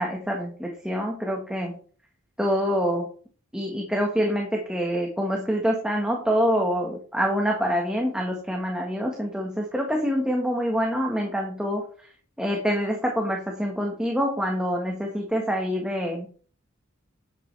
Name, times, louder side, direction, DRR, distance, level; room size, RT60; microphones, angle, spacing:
voice 1, 0.0-1.7 2.4-3.1 3.5-11.8 12.4-16.3, equal, 5° right, 0 dB, 1.6 m, -26 dB
10.5 x 8.5 x 3.5 m, 0.43 s
head